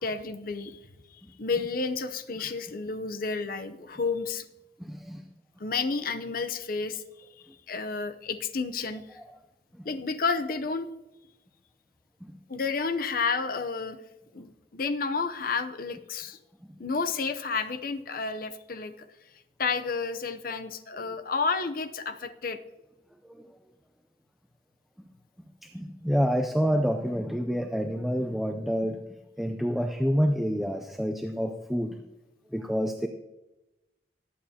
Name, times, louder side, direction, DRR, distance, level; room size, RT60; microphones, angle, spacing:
voice 1, 0.0-4.4 5.6-7.3 7.7-9.2 9.8-10.9 12.5-14.0 14.3-16.4 16.8-19.1 19.6-22.6, left 4 dB, 55° left, 9 dB, 0.7 m, -31 dB
voice 2, 4.8-5.2 12.2-12.4 23.3-23.5 25.7-29.0 29.4-32.0 32.5-33.1, equal, ahead, 5 dB, 0.4 m, -28 dB
18.5 x 8.6 x 2.8 m, 1.0 s
head